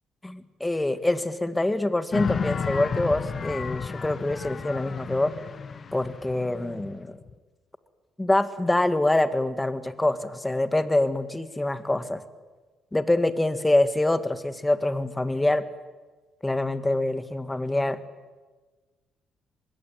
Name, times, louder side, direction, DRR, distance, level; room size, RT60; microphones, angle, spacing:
voice 1, 0.2-5.3 5.9-7.2 8.2-12.2 12.9-15.6 16.4-18.0, left 2 dB, 15° left, 12 dB, 1.9 m, -25 dB
sound 1, 2.1-7.3, left 5 dB, 45° left, 1.4 m, -32 dB
24.0 x 22.0 x 9.2 m, 1.3 s
cardioid pair, 90°, 0 cm